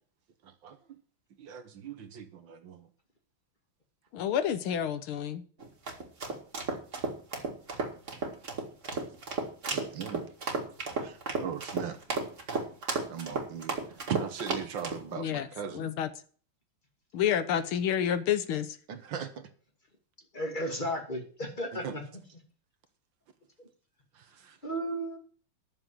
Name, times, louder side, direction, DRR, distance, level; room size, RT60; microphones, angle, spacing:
voice 1, 1.4-2.8 9.7-10.3 11.0-12.0 13.1-13.8 14.1-15.9 18.9-19.5 21.7-21.9 24.4-24.5, right 8 dB, 65° right, 1.8 m, -38 dB
voice 2, 4.1-5.4 15.1-15.5 15.7-16.1 17.1-18.7, left 9 dB, 90° left, 1.8 m, -29 dB
sound 1, 5.6-15.0, right 3 dB, 35° right, 2.2 m, -34 dB
voice 3, 20.3-22.0 23.6-23.7 24.6-25.2, equal, 20° left, 2.5 m, -34 dB
11.0 x 7.0 x 7.6 m
omnidirectional pair, 2.3 m